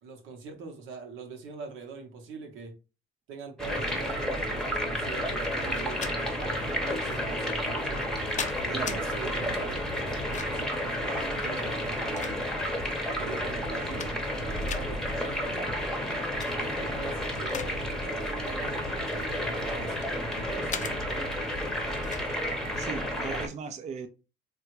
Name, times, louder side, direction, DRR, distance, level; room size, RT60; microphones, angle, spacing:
voice 1, 0.0-2.7 3.3-8.1 8.6-12.2 13.2-14.1 14.6-15.7 16.6-21.0, right 4 dB, 85° right, 0.9 m, -42 dB
sound 1, 3.6-23.5, equal, 5° left, 0.8 m, -31 dB
sound 2, 5.7-6.2 7.1-7.2 7.9-9.0 10.1-10.7 11.7-12.8 13.3-13.4 13.7-14.4 14.7-14.9 16.2-16.5 16.9-17.7 18.0-18.3 19.0-20.2 20.7-20.9 22.0-22.3, left 7 dB, 40° left, 0.4 m, -38 dB
voice 2, 22.8-24.1, right 6 dB, 35° right, 0.4 m, -37 dB
3.4 x 2.3 x 3.0 m
cardioid pair, 90°, 20 cm